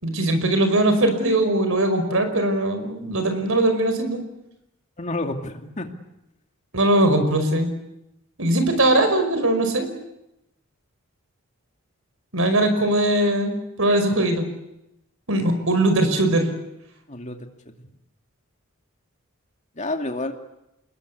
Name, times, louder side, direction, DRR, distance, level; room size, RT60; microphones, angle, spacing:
voice 1, 0.0-4.2 6.7-7.7 8.4-9.9 12.3-14.4 15.3-16.5, right 1 dB, 65° right, 8 dB, 5.3 m, -20 dB
voice 2, 5.0-5.9 17.1-17.4 19.8-20.3, left 2 dB, 35° left, 5 dB, 2.5 m, -29 dB
27.5 x 21.5 x 8.5 m, 0.87 s
head